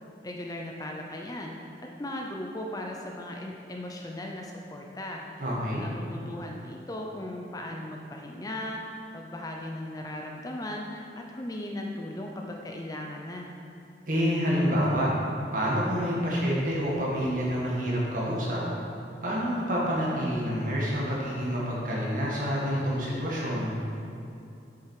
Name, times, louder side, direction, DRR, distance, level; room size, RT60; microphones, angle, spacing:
voice 1, 0.2-1.6 2.0-5.2 5.8-8.8 9.1-13.5, left 1 dB, 20° left, 1 dB, 0.6 m, -37 dB
voice 2, 5.4-5.9 14.1-15.1 15.5-18.6 19.2-23.8, equal, 50° right, -5 dB, 2.0 m, -27 dB
7.6 x 7.1 x 4.8 m, 2.7 s
head